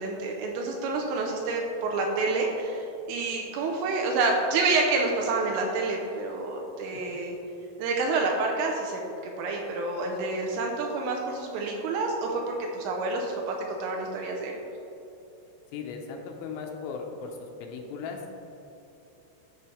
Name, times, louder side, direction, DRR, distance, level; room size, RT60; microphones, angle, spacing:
voice 1, 0.0-7.4 7.8-9.0 9.4-14.5, right 3 dB, 85° right, 0 dB, 3.2 m, -28 dB
voice 2, 15.7-17.3 17.6-18.3, left 5 dB, 90° left, 2 dB, 3.3 m, -37 dB
12.5 x 5.5 x 3.3 m, 2.9 s
omnidirectional pair, 5.9 m